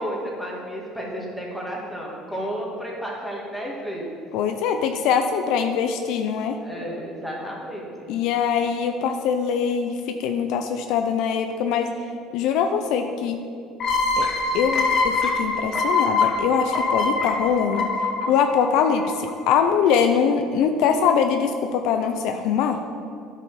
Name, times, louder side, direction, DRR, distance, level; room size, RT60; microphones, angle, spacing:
voice 1, 0.0-4.2 6.6-8.1, equal, ahead, -3 dB, 2.1 m, -32 dB
voice 2, 4.3-6.6 8.1-11.9 12.3-13.4 14.2-17.9 18.3-22.8, left 7 dB, 75° left, 6 dB, 0.5 m, -23 dB
sound 1, 13.8-19.3, left 3 dB, 55° left, 1.2 m, -24 dB
9.6 x 5.6 x 5.0 m, 2.5 s
supercardioid pair, 100°, 0 cm